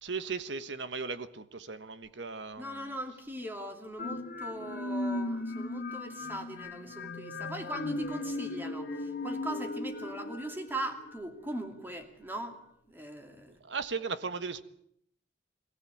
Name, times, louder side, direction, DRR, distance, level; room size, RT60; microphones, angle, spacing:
voice 1, 0.0-3.0 13.5-14.6, right 4 dB, 75° right, 12 dB, 1.3 m, -37 dB
voice 2, 2.6-12.6 12.9-13.6, right 1 dB, 10° right, 5 dB, 2.6 m, -40 dB
sound 1, 4.0-11.7, left 2 dB, 55° left, 1.9 m, -37 dB
23.0 x 16.0 x 8.6 m, 0.71 s
head